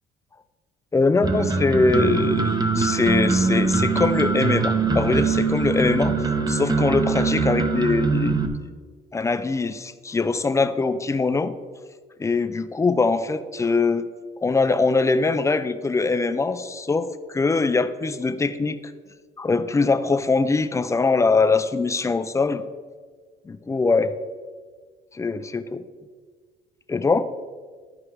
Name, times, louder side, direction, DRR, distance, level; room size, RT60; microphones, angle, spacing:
voice 1, 0.9-6.2 6.5-8.7 9.1-11.5 12.2-14.0 14.4-18.8 19.4-22.6 23.5-24.1 25.1-25.8 26.9-27.3, left 3 dB, 15° left, 11 dB, 0.5 m, -22 dB
sound 1, 1.2-8.5, right 4 dB, 25° right, 0.9 m, -22 dB
12.0 x 4.8 x 4.6 m, 1.5 s
cardioid pair, 110°, 17 cm